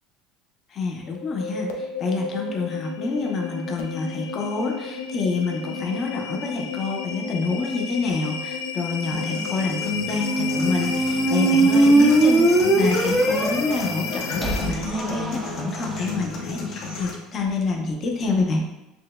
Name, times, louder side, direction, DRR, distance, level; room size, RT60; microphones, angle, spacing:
voice 1, 0.7-18.6, left 4 dB, 40° left, 0 dB, 0.7 m, -27 dB
sound 1, 1.0-14.9, left 5 dB, 90° left, 0.4 m, -32 dB
sound 2, 9.1-17.1, left 3 dB, 60° left, 0.9 m, -34 dB
sound 3, 10.1-16.0, right 2 dB, 15° right, 0.5 m, -21 dB
6.0 x 2.2 x 2.3 m, 0.94 s
supercardioid pair, 115°, 0 cm